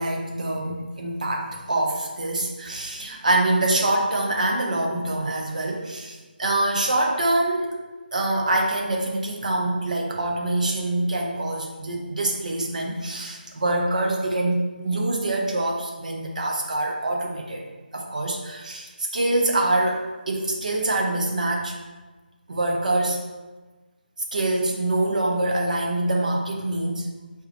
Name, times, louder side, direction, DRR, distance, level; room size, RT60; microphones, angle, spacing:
voice 1, 0.0-7.7 8.1-17.6 17.9-21.8 22.5-23.2 24.3-27.1, right 2 dB, 50° right, 0 dB, 0.7 m, -25 dB
3.6 x 2.9 x 4.3 m, 1.2 s
figure-of-eight pair, 160°, 5 cm